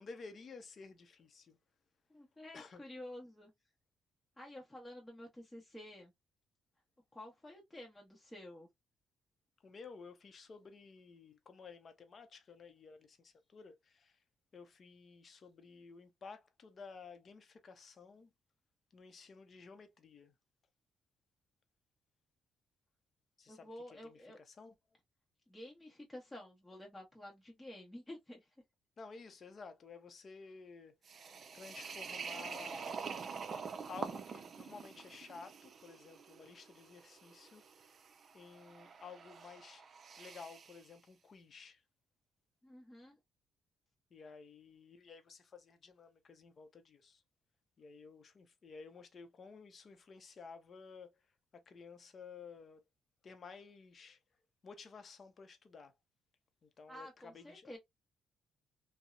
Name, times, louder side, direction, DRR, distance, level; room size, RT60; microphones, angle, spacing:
voice 1, 0.0-1.6 2.5-2.8 9.6-14.2 14.5-18.3 18.9-20.3 23.4-24.7 29.0-33.0 33.5-33.6 33.9-37.6 38.3-39.8 40.2-41.8 44.1-47.2 47.8-51.1 51.5-52.8 53.2-54.2 54.6-55.9 56.6-57.8, left 4 dB, 45° left, 0.6 m, -53 dB
voice 2, 2.1-3.5 4.4-6.1 7.1-8.7 23.5-24.4 25.5-28.5 42.6-43.1 56.9-57.8, left 1 dB, 15° left, 0.9 m, -51 dB
sound 1, 31.0-40.8, right 5 dB, 50° right, 0.4 m, -47 dB
2.7 x 2.0 x 2.3 m
cardioid pair, 90°, 0 cm